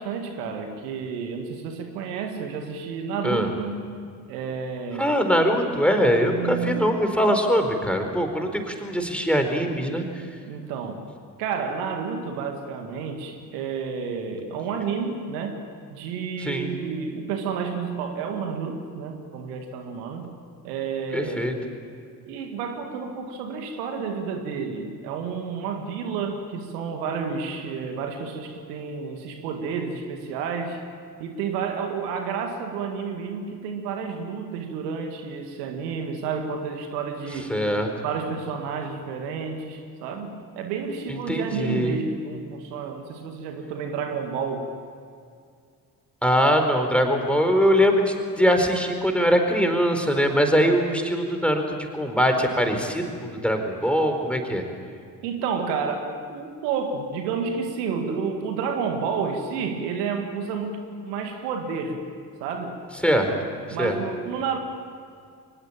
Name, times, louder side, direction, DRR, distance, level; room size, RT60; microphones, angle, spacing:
voice 1, 0.0-4.0 4.3-5.1 6.3-7.0 10.4-11.0 11.4-15.6 15.9-20.3 20.6-21.6 22.2-30.8 31.2-37.5 38.0-44.7 55.2-62.1 62.4-62.8 63.7-64.6, right 5 dB, 80° right, 5 dB, 2.0 m, -30 dB
voice 2, 5.0-10.0 16.4-16.7 21.1-21.5 37.5-37.9 41.1-42.0 46.2-54.6 63.0-63.3 63.8-63.9, equal, ahead, 4 dB, 4.5 m, -22 dB
23.5 x 20.0 x 8.9 m, 2.3 s
hypercardioid pair, 45°, 48 cm